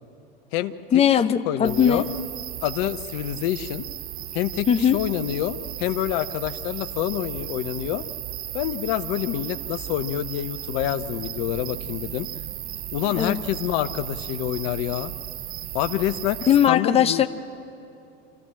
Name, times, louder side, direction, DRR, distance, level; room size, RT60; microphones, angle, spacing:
voice 1, 0.9-2.1 4.7-5.0 13.2-13.4 16.5-17.3, left 9 dB, 20° left, 10 dB, 0.8 m, -19 dB
voice 2, 1.5-2.1 2.6-3.9 4.3-4.7 4.9-8.0 8.5-12.3 12.9-15.1 15.7-16.4 16.7-17.2, left 13 dB, 45° left, 11 dB, 0.9 m, -27 dB
Night Field, 1.6-16.7, right 12 dB, 30° right, 0.7 m, -35 dB
27.0 x 14.0 x 7.6 m, 2.8 s
hypercardioid pair, 90°, 31 cm